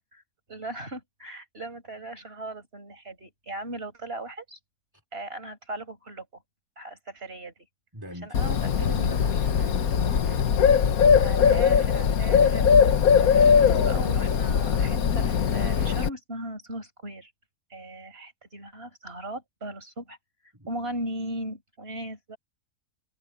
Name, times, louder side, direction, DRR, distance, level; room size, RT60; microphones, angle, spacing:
voice 1, 0.5-4.6 5.1-6.4 6.8-7.5 8.2-9.5 11.2-12.7 13.1-13.2 13.6-17.3 17.7-20.2 20.7-22.4, right 1 dB, 40° right, 6.0 m, -38 dB
voice 2, 7.9-10.7 13.5-14.3 20.5-20.7, equal, 15° right, 3.4 m, -43 dB
Bird, 8.3-16.1, left 7 dB, 70° left, 1.5 m, -21 dB
omnidirectional pair, 1.6 m